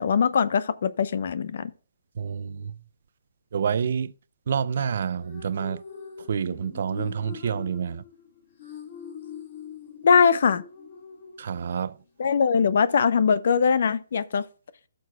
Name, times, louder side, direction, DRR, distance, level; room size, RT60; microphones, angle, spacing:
voice 1, 0.0-1.7 10.0-10.6 12.2-14.4, left 6 dB, 55° left, 0.7 m, -21 dB
voice 2, 2.2-2.7 3.5-4.1 4.5-5.8 6.3-8.0 11.4-12.0, right 7 dB, 50° right, 0.4 m, -28 dB
sound 1, 5.0-12.0, left 7 dB, 40° left, 1.5 m, -43 dB
15.0 x 6.3 x 2.3 m
hypercardioid pair, 165°, 0 cm